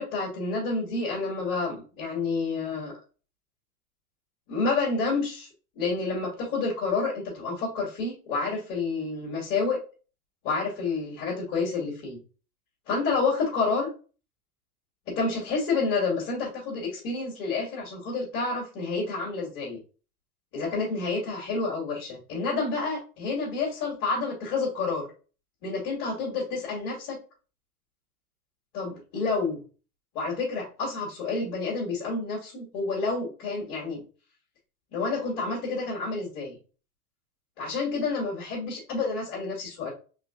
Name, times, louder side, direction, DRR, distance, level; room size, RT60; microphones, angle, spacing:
voice 1, 0.0-2.9 4.5-5.5 5.8-9.8 10.4-12.2 12.9-13.9 15.1-19.8 20.5-25.1 25.6-27.2 28.7-29.6 30.1-34.0 34.9-36.6 37.6-39.9, left 4 dB, 45° left, -6 dB, 2.6 m, -29 dB
4.9 x 3.9 x 2.5 m, 0.36 s
figure-of-eight pair, 100°, 47 cm